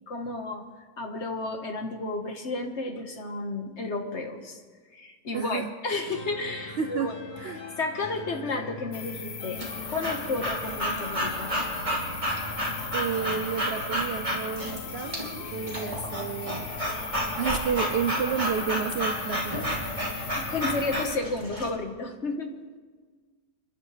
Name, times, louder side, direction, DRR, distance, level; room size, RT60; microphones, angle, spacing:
voice 1, 0.1-0.7 1.0-4.6 4.9-7.2 7.5-11.5 20.5-22.5, left 3 dB, 45° left, 4 dB, 1.7 m, -32 dB
voice 2, 5.3-5.7 6.8-7.6 12.9-15.2 15.5-16.7 17.1-19.7, right 7 dB, 85° right, 8 dB, 0.5 m, -31 dB
sound 1, 6.1-21.1, left 2 dB, 85° left, 2.5 m, -41 dB
sound 2, 8.9-21.2, left 7 dB, 65° left, 1.4 m, -40 dB
Breathing / Dog, 9.6-21.7, equal, 20° right, 2.9 m, -32 dB
29.5 x 11.5 x 3.3 m, 1.5 s
omnidirectional pair, 1.7 m